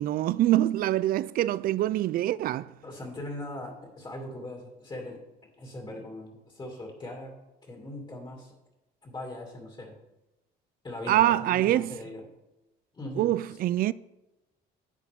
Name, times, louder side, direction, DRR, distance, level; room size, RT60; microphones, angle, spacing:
voice 1, 0.0-2.7 11.1-11.9 13.2-13.9, right 14 dB, 60° right, 0.4 m, -25 dB
voice 2, 2.8-5.2 5.6-7.3 7.6-8.5 9.0-9.9 10.8-12.2 12.9-13.3, left 1 dB, 25° left, 2.6 m, -40 dB
11.0 x 8.3 x 3.6 m
cardioid pair, 110°, 17 cm